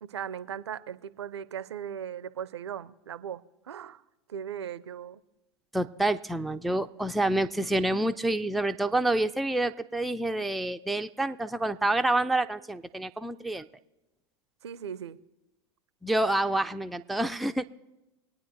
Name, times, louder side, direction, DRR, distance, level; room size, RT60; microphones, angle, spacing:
voice 1, 0.0-3.4 3.7-4.0 4.3-5.2 14.6-15.2, right 8 dB, 80° right, 18 dB, 0.4 m, -38 dB
voice 2, 5.7-13.7 16.0-17.7, right 1 dB, ahead, 7 dB, 0.3 m, -28 dB
23.5 x 9.0 x 2.6 m, 0.99 s
hypercardioid pair, 85°, 14 cm